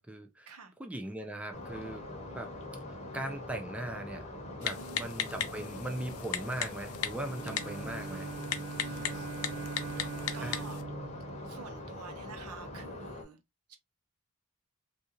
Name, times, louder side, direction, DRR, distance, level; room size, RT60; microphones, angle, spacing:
voice 1, 0.0-0.5 0.8-2.1 2.3-2.5 3.1-4.3 4.6-8.3 10.4-10.6, right 1 dB, 5° right, 0.4 m, -39 dB
sound 1, 1.5-13.2, left 1 dB, 30° left, 0.9 m, -43 dB
Typing, 4.6-10.8, left 9 dB, 85° left, 0.5 m, -38 dB
voice 2, 4.6-5.0 8.8-9.3 10.3-10.8 11.5-13.4 13.7-13.8, right 4 dB, 85° right, 0.9 m, -48 dB
Bowed string instrument, 7.1-12.4, right 5 dB, 30° right, 0.8 m, -42 dB
3.6 x 2.6 x 2.8 m
head